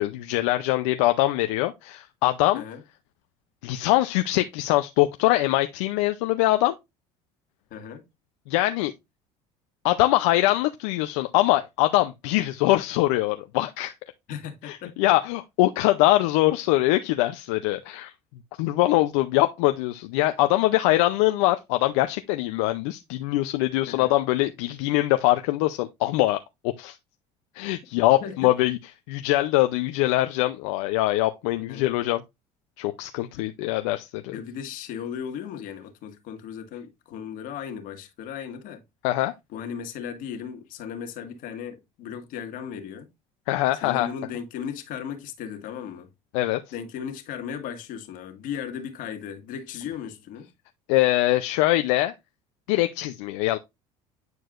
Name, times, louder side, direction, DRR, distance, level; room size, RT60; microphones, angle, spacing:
voice 1, 0.0-2.6 3.6-6.7 8.5-8.9 9.8-13.9 14.6-18.1 18.6-26.4 26.8-27.0 27.6-28.8 29.1-32.2 32.8-34.4 39.0-39.3 43.5-44.1 46.3-46.6 50.9-52.1 52.7-53.6, left 17 dB, 85° left, 0.5 m, -23 dB
voice 2, 7.7-8.1 14.3-15.0 23.9-24.1 28.2-28.5 31.6-31.9 33.4-33.5 34.3-38.8 39.5-43.1 43.8-46.1 46.7-50.5, left 8 dB, 65° left, 1.7 m, -36 dB
9.4 x 4.6 x 2.5 m
supercardioid pair, 90°, 15 cm